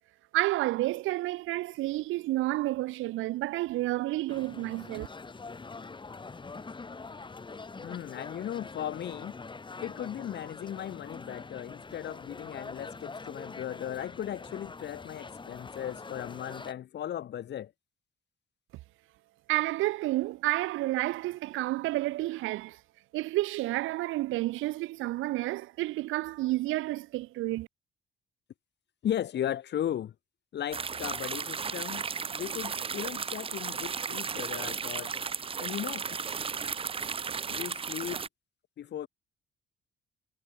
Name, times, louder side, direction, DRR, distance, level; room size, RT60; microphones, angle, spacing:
voice 1, 0.3-5.1 19.5-22.8 23.1-27.7, right 18 dB, 85° right, 0.5 m, -30 dB
sound 1, 4.3-16.7, left 4 dB, 25° left, 1.7 m, -44 dB
voice 2, 7.8-9.3 9.8-17.7 29.0-30.1 30.5-32.0 32.3-35.1 35.6-36.1 37.5-38.3 38.8-39.1, left 10 dB, 60° left, 1.1 m, -36 dB
sound 2, 30.7-38.3, right 6 dB, 30° right, 0.6 m, -35 dB
cardioid pair, 90°, 20 cm